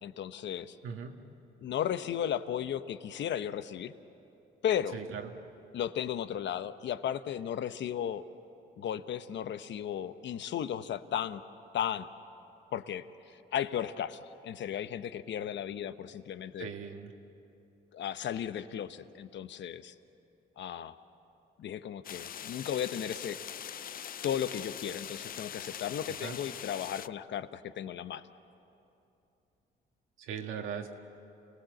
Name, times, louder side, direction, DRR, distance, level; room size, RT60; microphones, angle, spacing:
voice 1, 0.0-0.8 1.6-3.9 4.6-5.0 5.7-8.3 8.8-11.4 11.7-12.1 12.7-16.7 17.9-19.9 20.6-21.0 21.6-23.4 24.2-28.2, left 9 dB, 65° left, 12 dB, 0.9 m, -35 dB
voice 2, 0.8-1.1 4.9-5.3 16.6-17.1 26.2-26.4 30.2-30.9, right 7 dB, 85° right, 3 dB, 1.8 m, -39 dB
sound 1, 22.0-27.1, left 9 dB, 45° left, 0.5 m, -42 dB
28.5 x 18.0 x 7.8 m, 2.8 s
cardioid pair, 90°, 20 cm